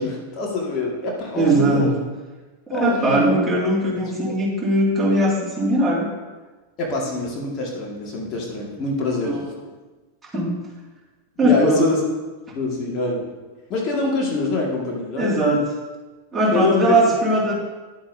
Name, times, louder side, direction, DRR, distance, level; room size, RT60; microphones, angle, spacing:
voice 1, 0.0-2.0 2.7-3.4 4.2-4.3 6.8-9.4 11.4-12.0 12.6-13.3 13.7-15.5 16.5-17.0, left 3 dB, 35° left, -3 dB, 1.9 m, -25 dB
voice 2, 1.4-1.9 2.7-6.1 9.2-9.5 10.3-10.5 11.4-11.9 15.2-15.7 16.3-17.5, right 1 dB, 10° right, -5 dB, 2.2 m, -19 dB
10.5 x 8.5 x 2.7 m, 1.3 s
figure-of-eight pair, 90°, 0 cm